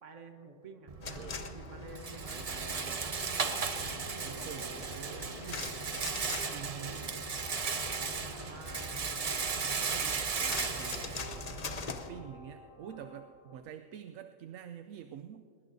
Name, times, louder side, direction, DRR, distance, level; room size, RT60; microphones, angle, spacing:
voice 1, 0.0-5.9 8.4-10.3, right 3 dB, 70° right, 5 dB, 1.6 m, -52 dB
Rattle, 0.9-11.9, right 5 dB, 40° right, 0.6 m, -36 dB
sound 1, 1.0-12.1, left 4 dB, 35° left, 0.7 m, -44 dB
sound 2, 2.3-13.6, left 1 dB, 65° left, 2.7 m, -53 dB
voice 2, 4.2-5.6 6.2-7.3 10.7-11.2 11.8-15.5, right 10 dB, 85° right, 8 dB, 1.0 m, -47 dB
21.5 x 20.5 x 2.7 m, 2.4 s
omnidirectional pair, 1.3 m